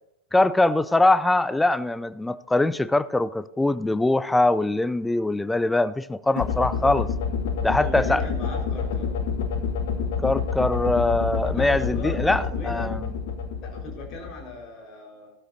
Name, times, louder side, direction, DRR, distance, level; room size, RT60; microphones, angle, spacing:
voice 1, 0.3-7.1 7.6-8.2 10.2-12.9, left 2 dB, 5° left, 16 dB, 0.4 m, -22 dB
sound 1, 6.4-14.6, left 5 dB, 55° left, 1.1 m, -28 dB
voice 2, 7.7-9.2 11.5-13.0 13.6-15.3, left 1 dB, 35° left, 1 dB, 4.6 m, -38 dB
17.5 x 12.5 x 2.7 m, 0.94 s
figure-of-eight pair, 90°, 0 cm